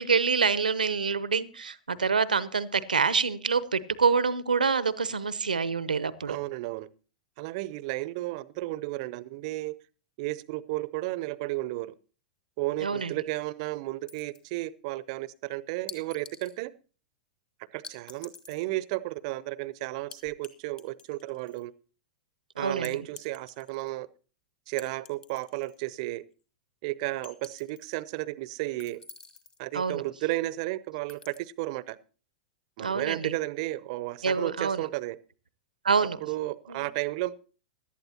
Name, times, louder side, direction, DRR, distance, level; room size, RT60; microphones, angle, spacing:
voice 1, 0.0-6.4 12.8-13.1 22.6-23.0 29.7-30.0 32.8-33.3 34.2-34.9 35.8-36.2 36.7-36.9, right 5 dB, 85° right, 17 dB, 0.7 m, -26 dB
voice 2, 6.3-6.9 7.4-9.7 10.2-11.9 12.6-16.7 17.7-21.7 22.6-24.1 24.7-26.2 26.8-29.0 29.6-32.0 32.8-35.2 36.2-37.3, right 18 dB, 50° right, 19 dB, 0.6 m, -33 dB
sound 1, 14.1-14.6 15.9-16.6 17.8-18.7 20.1-20.5 20.8-21.6 22.8-23.9 24.8-25.8 26.1-26.2 27.2-28.0 28.8-29.6 31.1-31.4, left 5 dB, 25° left, 1.7 m, -48 dB
17.0 x 11.5 x 2.9 m, 0.37 s
figure-of-eight pair, 95°, 4 cm